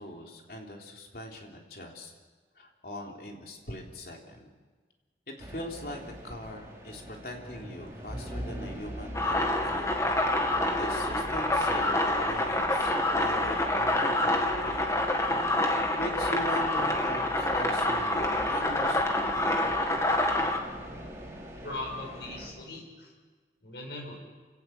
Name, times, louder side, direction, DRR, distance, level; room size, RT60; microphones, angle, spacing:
voice 1, 0.0-2.1 2.6-4.5 5.3-9.9 10.4-15.0 16.0-19.6, left 1 dB, 55° left, 1 dB, 3.7 m, -41 dB
sound 1, 5.4-22.5, equal, 15° right, 3.8 m, -43 dB
sound 2, 9.1-20.6, left 1 dB, 15° left, 1.9 m, -27 dB
voice 2, 21.6-23.1 23.6-24.2, left 2 dB, 70° left, 0 dB, 6.9 m, -39 dB
28.5 x 17.5 x 7.3 m, 1.4 s
head